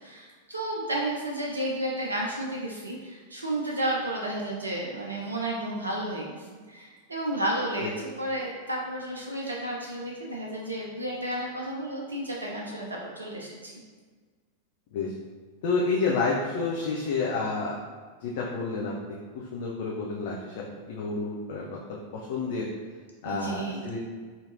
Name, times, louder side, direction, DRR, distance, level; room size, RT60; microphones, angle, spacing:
voice 1, 0.0-13.7 23.2-23.8, right 1 dB, 80° right, -2 dB, 0.4 m, -32 dB
voice 2, 15.6-17.8 18.2-22.7 23.2-24.0, left 4 dB, 50° left, -3 dB, 0.5 m, -30 dB
4.5 x 2.7 x 2.5 m, 1.5 s
figure-of-eight pair, 90°, 0 cm